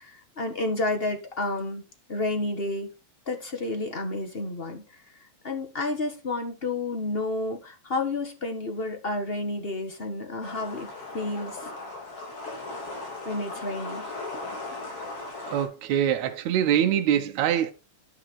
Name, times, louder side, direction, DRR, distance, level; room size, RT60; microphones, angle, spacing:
voice 1, 0.0-1.8 2.1-2.9 3.3-5.0 5.4-11.6 13.2-14.1, left 2 dB, 25° left, 1.4 m, -30 dB
sound 1, 10.4-15.7, left 2 dB, 50° left, 3.7 m, -37 dB
voice 2, 15.5-17.7, right 10 dB, 75° right, 2.1 m, -24 dB
11.0 x 5.9 x 4.7 m
omnidirectional pair, 3.4 m